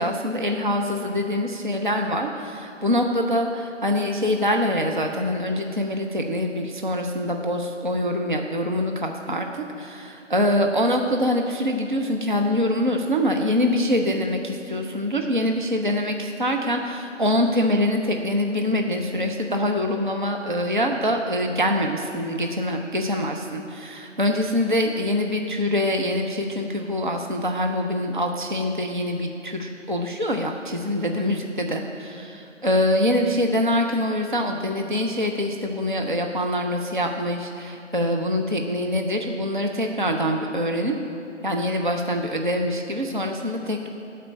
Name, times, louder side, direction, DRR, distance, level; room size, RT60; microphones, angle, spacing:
voice 1, 0.0-9.5 9.9-10.0 10.3-40.9 41.4-43.9, left 1 dB, 40° right, 3 dB, 0.5 m, -24 dB
12.5 x 4.3 x 8.3 m, 2.9 s
figure-of-eight pair, 180°, 38 cm